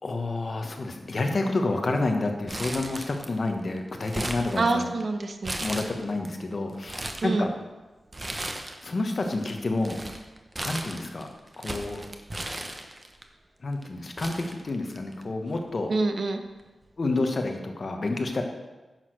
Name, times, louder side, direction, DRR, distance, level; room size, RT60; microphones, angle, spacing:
voice 1, 0.0-4.9 5.6-7.5 8.8-10.0 10.6-11.3 11.6-12.1 13.6-15.9 17.0-18.4, left 2 dB, 40° left, 4 dB, 1.3 m, -29 dB
Crumpling crinkling, 2.5-3.5 3.8-5.0 5.4-6.3 6.7-7.3 8.1-8.9 9.2-13.2 13.8-13.9 14.2-15.2 15.5-15.6 16.6-16.8, right 1 dB, 20° right, 0.9 m, -36 dB
voice 2, 4.6-5.6 7.2-7.5 15.9-16.4, right 3 dB, 50° right, 7 dB, 0.9 m, -26 dB
10.5 x 6.5 x 6.5 m, 1.1 s
wide cardioid pair, 165°, 0 cm